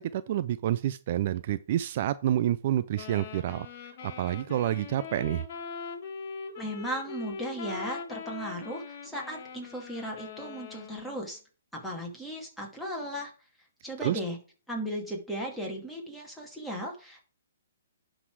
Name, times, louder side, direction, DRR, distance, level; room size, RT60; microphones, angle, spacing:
voice 1, 0.0-3.7 4.0-5.5 14.0-14.2, right 12 dB, 45° right, 14 dB, 0.4 m, -28 dB
sound 1, 2.9-11.3, left 6 dB, 50° left, 1.6 m, -42 dB
voice 2, 6.6-11.4 11.7-13.3 13.8-14.4 14.7-17.2, equal, ahead, -2 dB, 2.3 m, -36 dB
11.0 x 4.0 x 4.6 m, 0.38 s
hypercardioid pair, 145°, 0 cm